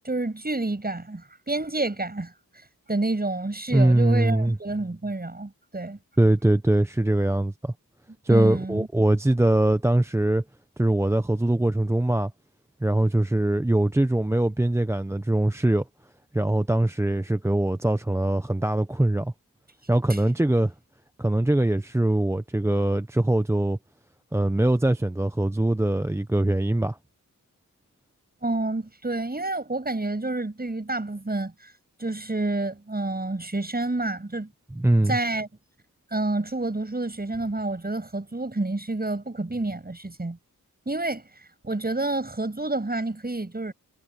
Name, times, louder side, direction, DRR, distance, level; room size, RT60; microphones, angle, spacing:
voice 1, 0.0-2.3 2.9-6.0 8.3-8.9 20.1-20.2 28.4-31.7 32.0-34.5 35.1-35.5 36.1-40.4 40.9-41.2 41.6-43.7, right 2 dB, 25° right, 7.2 m, -29 dB
voice 2, 3.7-4.6 6.2-7.7 8.2-10.4 10.8-12.3 12.8-15.8 16.3-19.3 19.9-20.7 21.2-23.8 24.3-27.0 34.8-35.2, right 1 dB, 10° right, 0.6 m, -22 dB
wide cardioid pair, 95°, 34 cm